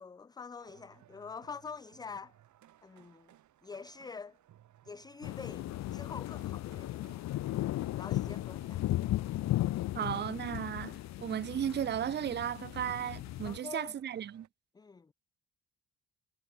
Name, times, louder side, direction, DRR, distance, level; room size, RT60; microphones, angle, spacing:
voice 1, 0.0-2.3 2.8-3.3 3.6-4.4 4.8-7.2 7.7-8.9 13.4-13.9 14.7-15.1, left 5 dB, 15° left, 0.4 m, -46 dB
sound 1, 0.6-14.5, right 12 dB, 70° right, 2.3 m, -62 dB
sound 2, 5.2-13.6, left 15 dB, 65° left, 0.5 m, -36 dB
voice 2, 9.9-14.5, right 9 dB, 35° right, 0.5 m, -35 dB
cardioid pair, 90°, 30 cm